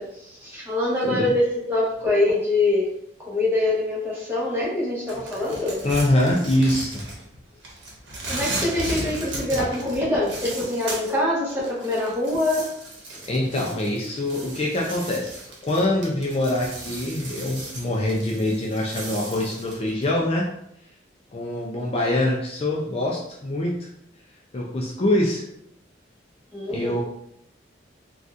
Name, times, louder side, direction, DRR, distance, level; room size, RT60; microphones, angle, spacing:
voice 1, 0.0-2.9 3.3-5.8 8.3-12.7 13.1-13.2 26.5-27.0, left 2 dB, 10° right, -7 dB, 1.1 m, -24 dB
sound 1, 5.1-7.4 7.6-11.1 11.5-20.1, right 1 dB, 70° right, 0.9 m, -36 dB
voice 2, 5.8-7.0 13.2-15.3 15.6-20.5 21.3-23.9 24.5-25.4 26.7-27.0, left 1 dB, 35° left, -2 dB, 0.4 m, -24 dB
4.0 x 2.4 x 2.4 m, 0.74 s
head